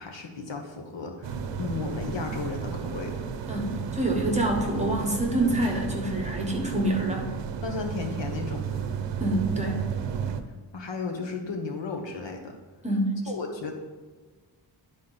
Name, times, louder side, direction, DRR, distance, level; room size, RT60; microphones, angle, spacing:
voice 1, 0.0-3.1 7.6-8.9 10.7-12.5 13.3-13.7, left 4 dB, 75° left, 3 dB, 1.2 m, -34 dB
sound 1, 1.2-10.4, right 6 dB, 75° right, 0.7 m, -33 dB
voice 2, 3.5-7.3 9.2-9.8 12.8-13.1, right 1 dB, 15° right, 1 dB, 1.2 m, -26 dB
11.0 x 4.2 x 4.0 m, 1.3 s
wide cardioid pair, 125°, 44 cm